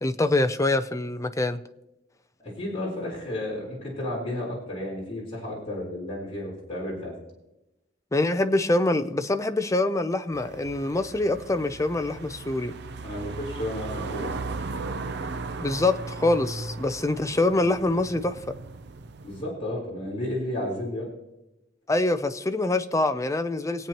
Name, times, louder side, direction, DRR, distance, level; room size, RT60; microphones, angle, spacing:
voice 1, 0.0-1.6 8.1-12.7 15.6-18.4 21.9-23.9, left 2 dB, 15° left, 0.6 m, -25 dB
voice 2, 2.4-7.1 13.0-14.3 19.2-21.1, left 1 dB, 30° left, 4.2 m, -32 dB
sound 1, 10.3-19.4, right 3 dB, 60° right, 0.6 m, -37 dB
24.5 x 8.7 x 3.0 m
head